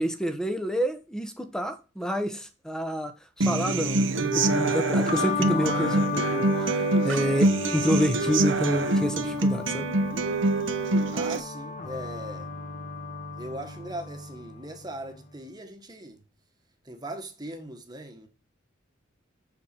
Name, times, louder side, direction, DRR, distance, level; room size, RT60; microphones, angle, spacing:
voice 1, 0.0-3.1 3.4-6.8 7.0-9.9, equal, 5° left, 1.1 m, -28 dB
Human voice / Acoustic guitar, 3.4-11.4, right 2 dB, 70° right, 0.9 m, -25 dB
sound 1, 4.3-15.3, left 5 dB, 40° left, 1.1 m, -35 dB
voice 2, 11.1-12.5 13.3-16.2 16.8-18.3, right 1 dB, 20° right, 1.5 m, -39 dB
7.0 x 6.6 x 4.6 m
head